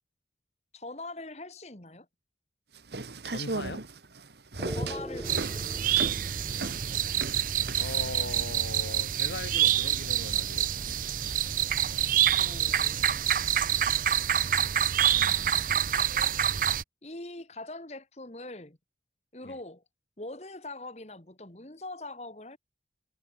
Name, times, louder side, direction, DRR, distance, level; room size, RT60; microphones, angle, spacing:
voice 1, 0.7-2.1 4.7-7.2 12.4-13.3 13.6-13.7 15.1-15.9 17.0-18.8 19.3-19.8 20.2-22.6, left 2 dB, 40° left, 2.0 m, -43 dB
sound 1, 2.8-8.2, right 3 dB, 70° right, 1.7 m, -36 dB
voice 2, 3.2-3.8 7.8-11.1 19.4-19.6, left 2 dB, 85° left, 2.7 m, -40 dB
sound 2, 4.6-14.8, equal, 5° right, 6.9 m, -47 dB
sound 3, 5.2-16.8, right 10 dB, 50° right, 0.6 m, -27 dB
head